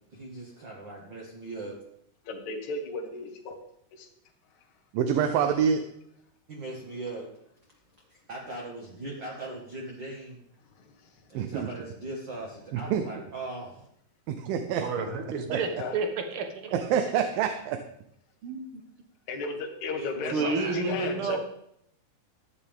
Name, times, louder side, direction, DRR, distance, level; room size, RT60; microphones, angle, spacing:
voice 1, 0.1-1.8 6.5-7.3 8.3-10.4 11.3-13.9 20.0-21.4, right 2 dB, 40° right, -2 dB, 1.9 m, -39 dB
voice 2, 2.3-3.6 3.9-4.1 10.8-10.9 15.8-16.0 19.3-21.4, left 3 dB, 60° left, 1 dB, 2.6 m, -34 dB
voice 3, 4.9-5.8 11.3-11.7 12.7-13.0 14.3-14.9 15.5-15.6 16.7-17.8, right 8 dB, 85° right, 7 dB, 2.5 m, -26 dB
voice 4, 14.8-16.7 18.4-18.8 20.3-21.4, right 4 dB, 65° right, 5 dB, 1.3 m, -30 dB
14.0 x 9.7 x 3.6 m, 0.73 s
omnidirectional pair, 4.0 m